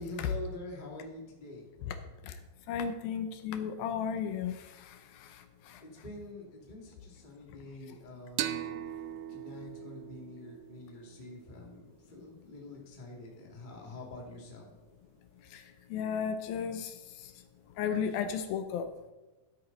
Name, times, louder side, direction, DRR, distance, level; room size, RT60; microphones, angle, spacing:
voice 1, 0.0-1.6 5.8-8.9 9.3-14.7, left 1 dB, 15° left, -1 dB, 1.6 m, -46 dB
voice 2, 2.7-5.8 15.5-15.6 15.9-17.3 17.8-18.9, left 7 dB, 80° left, 8 dB, 2.6 m, -35 dB
sound 1, 8.4-11.8, right 11 dB, 80° right, 2.3 m, -40 dB
14.5 x 8.2 x 4.0 m, 1.1 s
omnidirectional pair, 4.3 m